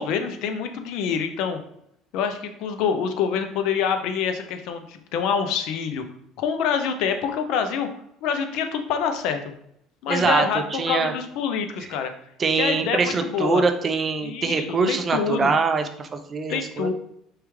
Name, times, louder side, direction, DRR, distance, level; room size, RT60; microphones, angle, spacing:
voice 1, 0.0-1.6 2.1-6.0 6.4-7.9 8.2-9.4 10.0-12.1 12.6-13.6 14.2-15.5 16.5-16.9, left 7 dB, 70° left, 7 dB, 0.7 m, -26 dB
voice 2, 10.1-10.4 10.7-11.1 11.8-11.9 12.4-16.9, right 4 dB, 30° right, 7 dB, 0.5 m, -23 dB
4.8 x 3.4 x 3.2 m, 0.75 s
cardioid pair, 130°, 0 cm